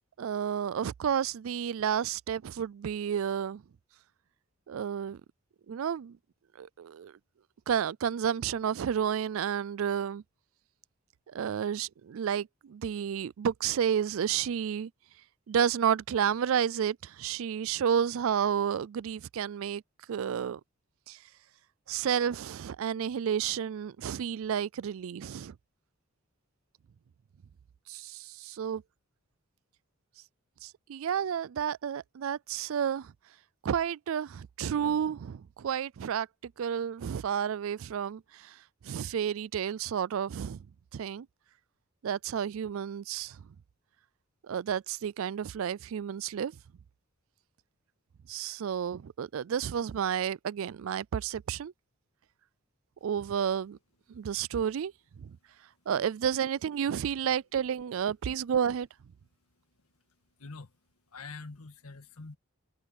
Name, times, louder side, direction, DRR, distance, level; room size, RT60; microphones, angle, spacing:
voice 1, 0.2-3.6 4.7-5.2 5.7-6.2 6.6-7.1 7.7-10.2 11.3-14.9 15.5-19.8 20.1-20.6 21.1-21.2 21.9-25.5 27.9-28.8 30.6-33.1 33.6-38.6 38.8-40.6 40.9-41.3 42.0-43.4 44.4-46.5 48.3-51.7 53.0-53.8 54.1-55.3 55.9-58.9, right 8 dB, 70° right, 0.3 m, -31 dB
voice 2, 59.4-60.8 61.1-62.4, left 3 dB, 90° left, 1.7 m, -47 dB
head